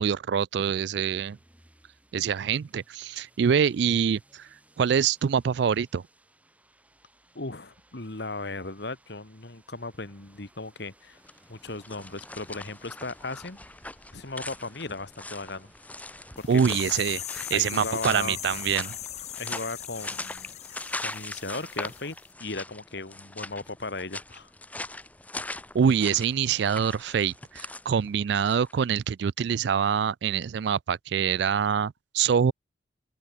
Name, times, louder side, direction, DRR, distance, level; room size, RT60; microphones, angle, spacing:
voice 1, 0.0-1.4 2.1-4.5 4.8-6.0 16.5-19.0 25.7-32.5, right 7 dB, 60° right, 0.3 m, -25 dB
sound 1, 0.9-19.7, right 1 dB, 5° right, 3.9 m, -62 dB
voice 2, 7.4-11.2 11.5-13.6 14.1-15.7 16.4-16.6 17.5-18.4 19.4-20.5 21.0-24.5, left 3 dB, 60° left, 1.7 m, -36 dB
Footsteps Walking Boot Muddy Puddles-Water-Squelch, 11.2-28.8, left 2 dB, 10° left, 1.6 m, -41 dB
Machine Shutdown, 16.4-22.0 22.3-22.4, left 12 dB, 35° left, 0.6 m, -39 dB
open air
head